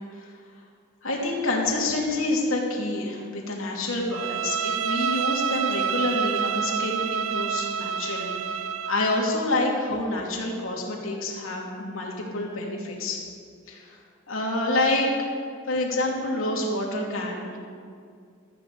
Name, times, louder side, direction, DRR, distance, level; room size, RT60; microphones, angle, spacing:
voice 1, 1.0-13.2 13.7-14.0 14.3-15.1 15.7-17.6, left 2 dB, 80° left, -2 dB, 2.8 m, -28 dB
Bowed string instrument, 4.1-9.0, right 8 dB, 80° right, 0.6 m, -28 dB
16.0 x 14.0 x 4.2 m, 2.2 s
head